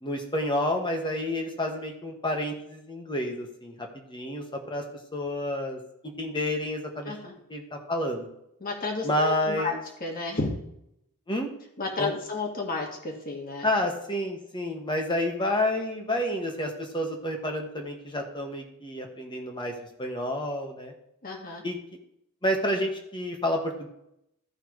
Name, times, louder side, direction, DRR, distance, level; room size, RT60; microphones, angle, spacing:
voice 1, 0.0-4.8 5.1-7.1 7.5-8.3 9.0-9.8 11.3-11.5 12.0-12.2 13.6-19.7 20.0-20.9 21.6-21.8 22.4-23.9, left 1 dB, 20° left, 3 dB, 1.5 m, -29 dB
voice 2, 8.6-9.7 10.0-10.6 11.8-13.7 21.2-21.6, left 3 dB, 40° left, 1 dB, 2.0 m, -32 dB
15.0 x 5.6 x 3.3 m, 0.80 s
head